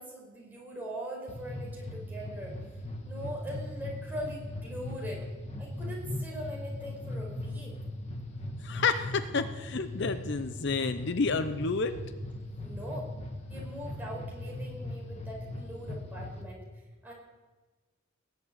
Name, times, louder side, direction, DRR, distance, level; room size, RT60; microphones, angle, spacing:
voice 1, 0.0-2.6 3.0-5.3 5.6-7.7 12.6-13.1 13.5-16.6 17.0-17.1, equal, 10° right, -3 dB, 5.3 m, -41 dB
sound 1, 1.3-16.4, left 1 dB, 30° left, 1.7 m, -39 dB
voice 2, 8.6-12.0, left 4 dB, 55° left, 10 dB, 0.7 m, -30 dB
19.5 x 7.4 x 9.5 m, 1.2 s
head